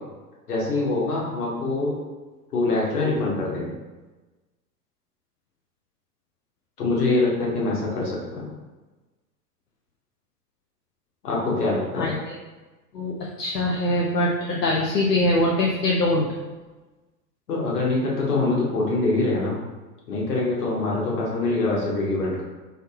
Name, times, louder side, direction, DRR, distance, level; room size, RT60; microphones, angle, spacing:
voice 1, 0.5-2.0 2.5-3.7 6.8-8.5 11.2-12.1 17.5-19.6 20.1-22.4, left 2 dB, 70° left, -4 dB, 1.4 m, -24 dB
voice 2, 12.0-12.3 12.9-16.3, left 1 dB, 85° left, -2 dB, 0.6 m, -23 dB
3.2 x 2.9 x 3.5 m, 1.2 s
figure-of-eight pair, 85°, 47 cm